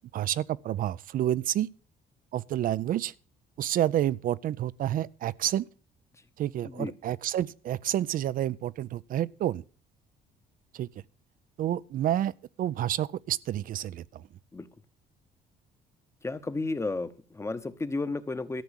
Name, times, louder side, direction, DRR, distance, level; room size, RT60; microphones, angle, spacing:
voice 1, 0.1-1.7 2.3-3.1 3.6-5.7 6.4-9.6 10.7-10.9 11.6-14.2, right 12 dB, 55° right, 0.5 m, -29 dB
voice 2, 16.2-18.6, left 3 dB, 15° left, 0.9 m, -33 dB
13.5 x 5.9 x 8.2 m
cardioid pair, 110°, 17 cm